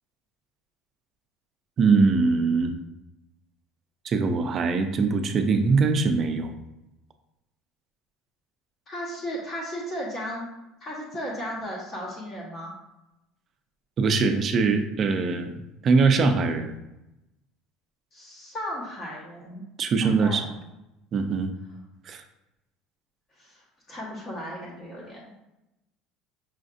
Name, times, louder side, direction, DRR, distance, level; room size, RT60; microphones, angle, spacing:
voice 1, 1.8-2.7 4.0-6.5 14.0-15.5 15.8-16.7 19.8-20.4 21.1-21.5 22.1-22.2, right 4 dB, 30° right, 7 dB, 0.4 m, -22 dB
voice 2, 8.9-10.5 10.8-12.7 18.1-19.6 20.0-20.6 23.4-25.2, equal, 30° left, -5 dB, 1.0 m, -35 dB
5.6 x 2.5 x 2.5 m, 0.93 s
cardioid pair, 150°, 0 cm